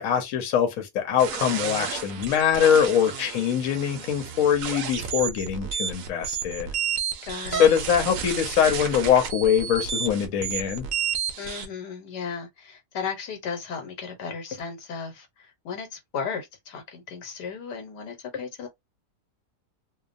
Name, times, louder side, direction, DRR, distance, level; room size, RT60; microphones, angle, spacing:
voice 1, 0.0-6.7 7.5-10.9, left 8 dB, 65° left, 1.1 m, -23 dB
sound 1, 1.2-11.7, right 8 dB, 70° right, 0.9 m, -32 dB
voice 2, 7.2-7.7 11.4-18.7, left 6 dB, 85° left, 1.5 m, -35 dB
2.8 x 2.2 x 2.5 m
omnidirectional pair, 1.7 m